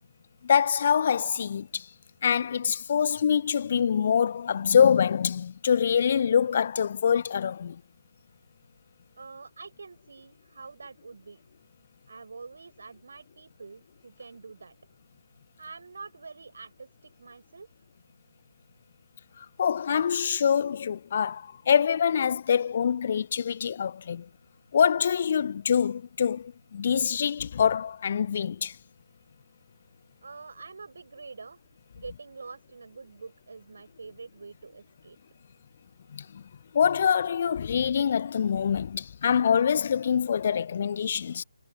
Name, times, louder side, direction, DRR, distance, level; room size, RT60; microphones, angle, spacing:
voice 1, 0.4-1.9 2.2-7.8 19.4-24.3 24.7-28.8 36.1-36.4 36.7-41.4, left 7 dB, 35° left, 0.8 m, -25 dB
voice 2, 9.2-11.4 12.1-14.8 15.6-17.7 30.2-31.6 31.9-35.2, right 4 dB, 55° right, 5.5 m, -45 dB
figure-of-eight pair, 145°, 0 cm